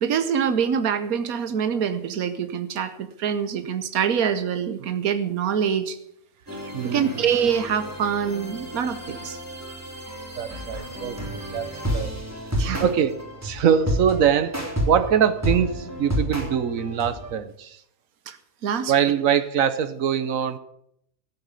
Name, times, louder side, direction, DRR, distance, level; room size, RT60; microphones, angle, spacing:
voice 1, 0.0-6.0 6.5-9.4 12.5-12.9 18.3-18.4 18.6-18.9, right 7 dB, 90° right, 11 dB, 1.4 m, -25 dB
sound 1, 6.5-17.3, equal, 10° right, 3.6 m, -31 dB
voice 2, 6.7-7.2 10.4-12.1 12.8-17.8 18.9-20.6, right 8 dB, 70° right, 14 dB, 1.3 m, -23 dB
14.0 x 8.4 x 8.2 m, 0.76 s
omnidirectional pair, 1.5 m